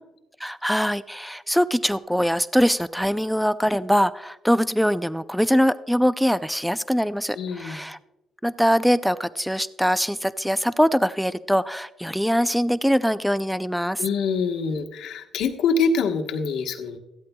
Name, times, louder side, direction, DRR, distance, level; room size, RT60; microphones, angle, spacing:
voice 1, 0.4-8.0 8.4-14.0, equal, ahead, 15 dB, 0.4 m, -22 dB
voice 2, 7.3-7.8 14.0-17.0, left 4 dB, 80° left, 4 dB, 1.2 m, -25 dB
16.0 x 12.5 x 2.3 m, 0.96 s
cardioid pair, 90°, 0 cm